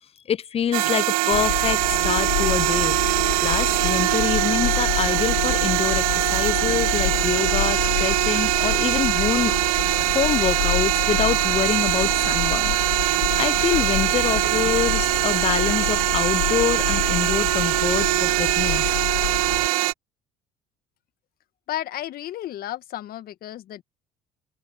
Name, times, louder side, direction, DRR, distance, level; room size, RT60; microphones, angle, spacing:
voice 1, 0.3-3.0 3.4-6.0 6.3-12.8 13.0-18.8, left 8 dB, 35° left, 0.5 m, -26 dB
sound 1, 0.7-19.9, right 19 dB, 85° right, 0.7 m, -22 dB
sound 2, 1.3-19.7, left 25 dB, 80° left, 3.3 m, -29 dB
sound 3, 2.5-17.0, right 4 dB, 30° right, 7.5 m, -52 dB
voice 2, 21.7-23.8, left 12 dB, 60° left, 1.7 m, -33 dB
open air
hypercardioid pair, 65°, 18 cm